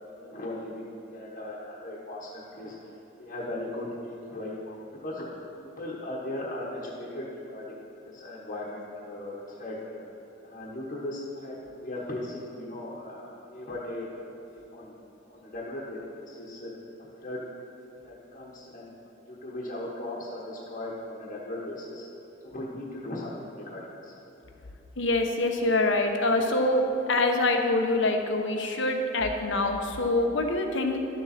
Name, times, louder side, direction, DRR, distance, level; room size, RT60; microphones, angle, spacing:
voice 1, 0.2-2.7 3.2-4.6 5.0-5.3 5.6-7.2 7.5-10.0 10.4-14.1 14.5-14.9 15.3-16.7 17.2-17.4 18.0-18.9 19.3-22.0 22.4-24.1, left 1 dB, 45° left, -7 dB, 1.2 m, -38 dB
voice 2, 25.0-31.0, left 2 dB, 75° left, 4 dB, 0.9 m, -25 dB
11.5 x 7.0 x 4.2 m, 3.0 s
head